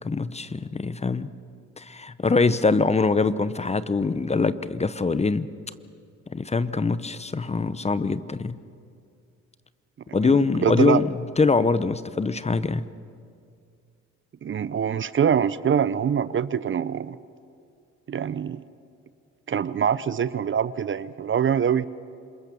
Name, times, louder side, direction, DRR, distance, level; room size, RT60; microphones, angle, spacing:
voice 1, 0.0-1.3 1.8-5.5 6.3-8.6 10.1-12.9, left 4 dB, 20° left, 15 dB, 0.8 m, -23 dB
voice 2, 10.6-11.0 14.4-17.2 18.1-18.6 19.5-21.9, right 8 dB, 40° right, 16 dB, 0.7 m, -24 dB
27.0 x 22.0 x 7.0 m, 2.3 s
cardioid pair, 90°, 30 cm